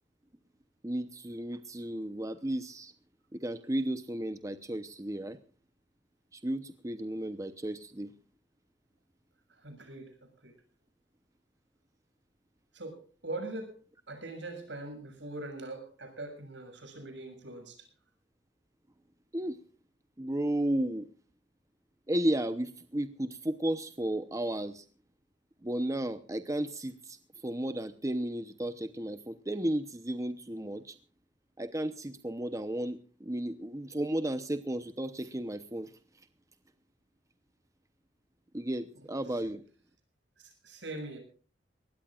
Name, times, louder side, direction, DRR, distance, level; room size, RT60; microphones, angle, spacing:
voice 1, 0.8-2.9 3.3-5.4 6.3-8.1 19.3-19.6 20.2-21.1 22.1-24.8 25.6-27.2 27.4-30.9 31.6-35.9 38.5-39.6, right 1 dB, 20° right, 10 dB, 0.8 m, -33 dB
voice 2, 9.5-10.5 12.7-13.8 14.1-17.9 38.5-38.6 39.3-39.4 40.4-41.2, right 2 dB, 75° right, 6 dB, 6.6 m, -42 dB
22.5 x 19.0 x 2.5 m, 0.40 s
head